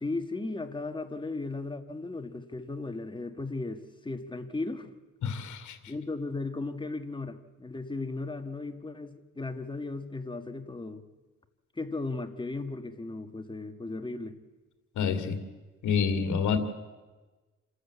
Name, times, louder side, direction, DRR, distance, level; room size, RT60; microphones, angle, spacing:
voice 1, 0.0-4.9 5.9-11.0 11.8-14.4, left 3 dB, 15° left, 7 dB, 1.6 m, -36 dB
voice 2, 5.2-5.8 15.0-15.4 15.8-16.6, left 6 dB, 75° left, 7 dB, 2.4 m, -28 dB
28.0 x 13.0 x 8.3 m, 1.2 s
cardioid pair, 90°, 30 cm